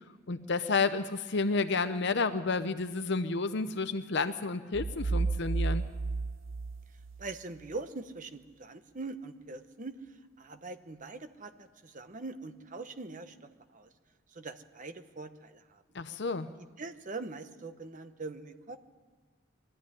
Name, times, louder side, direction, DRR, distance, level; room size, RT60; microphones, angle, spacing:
voice 1, 0.0-5.9 15.9-16.5, left 4 dB, 55° left, 10 dB, 0.7 m, -31 dB
sound 1, 4.7-7.6, right 3 dB, 70° right, 0.7 m, -32 dB
voice 2, 7.2-10.0 10.4-13.9 14.3-15.8 16.8-18.8, right 3 dB, 40° right, 9 dB, 1.0 m, -42 dB
22.0 x 13.5 x 9.7 m, 1.5 s
head